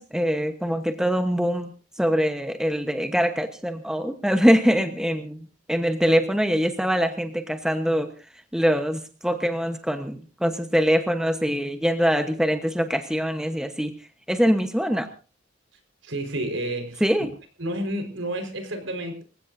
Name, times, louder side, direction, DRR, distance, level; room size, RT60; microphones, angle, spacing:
voice 1, 0.0-1.7 2.0-8.1 8.5-13.9 14.3-15.1 17.0-17.3, equal, 5° right, 7 dB, 1.0 m, -23 dB
voice 2, 16.0-17.0 17.6-19.2, right 1 dB, 80° right, 5 dB, 4.6 m, -30 dB
26.0 x 16.0 x 2.7 m, 0.33 s
head